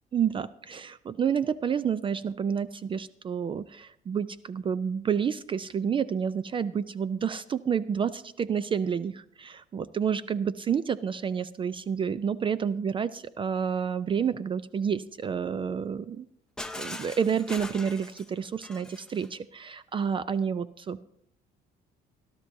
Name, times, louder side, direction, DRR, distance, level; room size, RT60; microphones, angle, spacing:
voice 1, 0.1-16.3 16.7-21.0, right 7 dB, 30° right, 16 dB, 0.4 m, -29 dB
Shatter, 16.6-19.3, left 2 dB, 5° left, 0.8 m, -41 dB
20.5 x 12.0 x 2.6 m, 0.73 s
cardioid pair, 110°, 17 cm